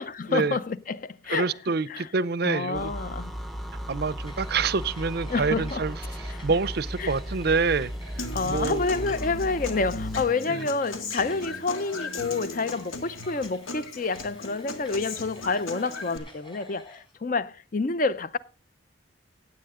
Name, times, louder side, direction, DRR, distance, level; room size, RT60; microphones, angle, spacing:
voice 1, 0.0-1.5 1.9-2.1 2.4-3.3 5.3-5.8 6.3-6.4 7.0-7.1 8.3-18.4, left 4 dB, 40° left, 0.5 m, -28 dB
voice 2, 1.3-2.9 3.9-6.0 6.4-8.8 10.5-10.7, right 4 dB, 50° right, 0.5 m, -27 dB
sound 1, 2.7-10.3, equal, ahead, 0.6 m, -36 dB
sound 2, 4.3-17.1, left 1 dB, 25° left, 4.3 m, -51 dB
Human voice / Acoustic guitar, 8.2-16.2, left 3 dB, 90° left, 1.7 m, -37 dB
16.0 x 8.5 x 3.7 m
head